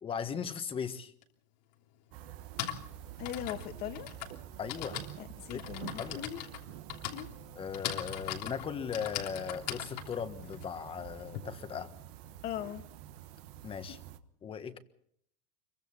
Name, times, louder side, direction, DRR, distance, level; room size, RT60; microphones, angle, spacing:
voice 1, 0.0-1.1 4.6-5.0 5.5-5.6 6.0-6.2 7.5-11.9 13.6-14.0 14.4-14.8, left 7 dB, 25° left, 1.5 m, -38 dB
Typing, 1.2-1.3 2.3-11.4, left 10 dB, 85° left, 3.2 m, -40 dB
sound 1, 2.1-14.2, right 11 dB, 65° right, 1.4 m, -48 dB
voice 2, 3.2-4.1 5.2-6.4 7.1-7.3 8.2-8.4 12.4-12.8 13.9-14.0, left 12 dB, 50° left, 2.1 m, -40 dB
25.5 x 23.5 x 4.3 m
supercardioid pair, 135°, 21 cm